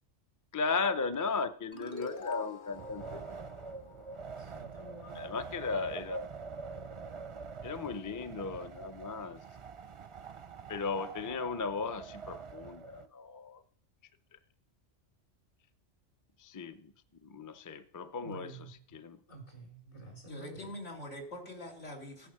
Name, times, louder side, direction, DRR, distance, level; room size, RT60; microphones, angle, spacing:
voice 1, 0.5-3.3 5.1-6.3 7.6-9.4 10.7-13.6 16.4-16.9 17.2-19.2, left 4 dB, 25° left, 0.4 m, -36 dB
sound 1, 1.7-4.9, left 4 dB, 50° left, 1.3 m, -45 dB
Wind, 2.7-13.1, right 5 dB, 40° right, 0.4 m, -45 dB
voice 2, 4.4-5.3 18.2-18.7 19.3-20.7, right 2 dB, 65° left, 4.3 m, -49 dB
voice 3, 20.2-22.3, left 1 dB, 85° left, 2.8 m, -44 dB
15.5 x 9.2 x 6.6 m
omnidirectional pair, 1.2 m